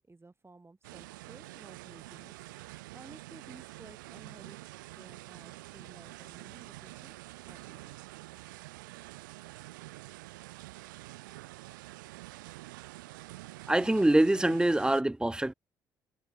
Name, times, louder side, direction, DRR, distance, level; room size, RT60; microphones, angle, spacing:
voice 1, 0.0-2.3 2.9-4.6 5.0-7.2 7.5-8.0, right 3 dB, 25° right, 7.8 m, -54 dB
sound 1, 0.8-15.0, right 19 dB, 90° right, 1.9 m, -47 dB
voice 2, 13.7-15.5, right 1 dB, 10° right, 0.8 m, -24 dB
hypercardioid pair, 50°, 10 cm